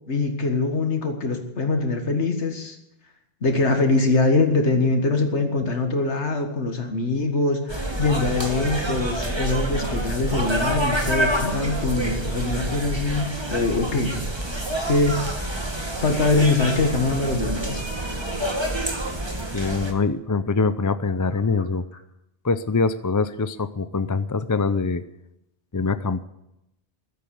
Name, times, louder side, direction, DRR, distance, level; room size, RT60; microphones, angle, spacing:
voice 1, 0.1-2.8 3.4-14.2 14.9-15.2 16.0-17.8, left 3 dB, 85° left, 5 dB, 1.9 m, -23 dB
sound 1, 7.7-19.9, right 1 dB, 25° right, 2.1 m, -27 dB
voice 2, 19.5-21.8 22.4-25.0 25.7-26.2, left 4 dB, 25° left, 12 dB, 0.4 m, -24 dB
15.0 x 12.0 x 7.1 m, 0.85 s
omnidirectional pair, 1.1 m